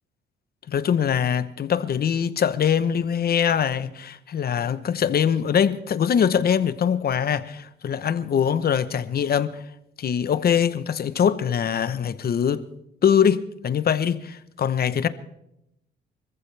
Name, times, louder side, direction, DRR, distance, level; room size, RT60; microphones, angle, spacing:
voice 1, 0.7-9.6 10.0-12.7 13.0-15.1, left 8 dB, 50° left, 1.0 m, -23 dB
25.5 x 14.5 x 3.4 m
cardioid pair, 90°, 20 cm